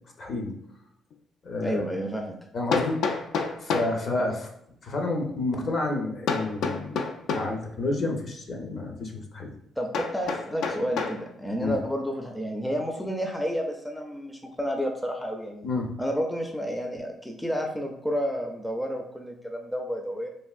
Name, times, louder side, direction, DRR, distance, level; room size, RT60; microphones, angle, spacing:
voice 1, 0.2-0.5 1.4-1.8 2.5-3.2 3.6-4.3 4.8-7.0 7.2-9.5 11.6-11.8 15.6-15.9, left 2 dB, 50° left, 2 dB, 0.6 m, -29 dB
Hammer, 1.1-1.2 2.7-4.0 6.3-7.6 9.9-11.2, left 4 dB, 85° left, 0.3 m, -29 dB
voice 2, 1.6-2.4 4.2-4.3 9.8-15.7 16.0-20.3, equal, 5° left, 3 dB, 0.4 m, -30 dB
3.3 x 2.5 x 2.4 m, 0.76 s
cardioid pair, 90°, 0 cm